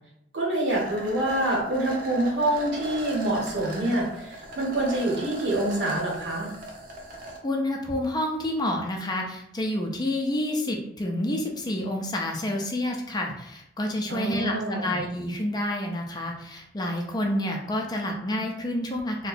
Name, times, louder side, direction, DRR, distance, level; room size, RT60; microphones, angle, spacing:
voice 1, 0.3-6.5 14.1-14.9, right 1 dB, 65° right, -3 dB, 1.1 m, -26 dB
sound 1, 0.7-7.4, right 1 dB, 50° right, 0.7 m, -38 dB
voice 2, 7.4-19.3, left 1 dB, 20° left, 1 dB, 0.4 m, -29 dB
2.7 x 2.1 x 4.0 m, 0.77 s
head